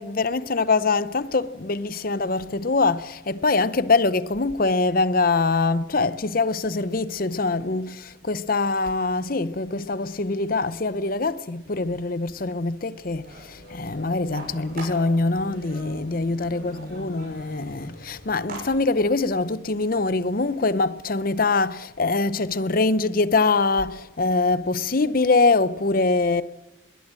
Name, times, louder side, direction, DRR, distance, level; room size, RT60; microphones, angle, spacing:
voice 1, 0.0-26.4, left 3 dB, 45° left, 0.7 m, -23 dB
sound 1, 13.2-18.6, right 2 dB, 50° right, 7.7 m, -43 dB
sound 2, 13.5-19.5, left 1 dB, 85° left, 2.4 m, -42 dB
21.5 x 18.0 x 7.6 m
head